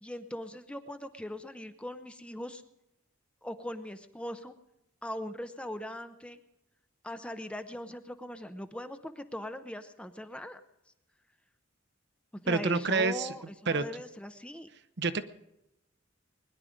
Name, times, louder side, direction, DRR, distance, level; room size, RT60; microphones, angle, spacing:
voice 1, 0.0-2.6 3.4-4.5 5.0-6.4 7.0-10.6 12.4-14.7, left 1 dB, 5° left, 9 dB, 0.7 m, -40 dB
voice 2, 12.5-13.3 13.7-13.8 15.0-15.2, right 4 dB, 55° right, 11 dB, 0.9 m, -28 dB
21.0 x 11.0 x 5.1 m, 0.86 s
head